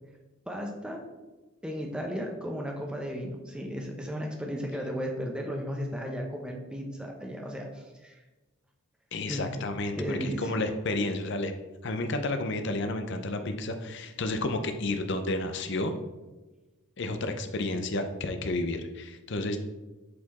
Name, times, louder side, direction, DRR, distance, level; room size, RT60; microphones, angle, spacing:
voice 1, 0.5-1.0 1.6-8.2 9.3-9.4 9.9-10.7, equal, 5° right, 1 dB, 0.7 m, -35 dB
voice 2, 9.1-11.5 11.8-15.9 17.0-19.6, left 2 dB, 55° left, 7 dB, 0.6 m, -31 dB
7.6 x 4.3 x 4.2 m, 1.2 s
head